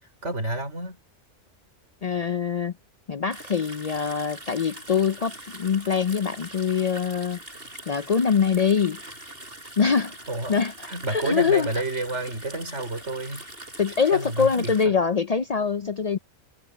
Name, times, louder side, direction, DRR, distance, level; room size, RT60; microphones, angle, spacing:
voice 1, 0.2-1.0 9.9-10.0 10.3-13.5 14.1-15.0, right 2 dB, 70° right, 5.9 m, -30 dB
voice 2, 2.0-2.7 3.1-7.4 7.9-9.0 9.8-10.1 10.5-10.7 11.1-11.7 13.8-16.2, left 6 dB, 50° left, 0.4 m, -23 dB
sound 1, 3.3-14.9, right 1 dB, 50° right, 7.3 m, -42 dB
omnidirectional pair, 1.3 m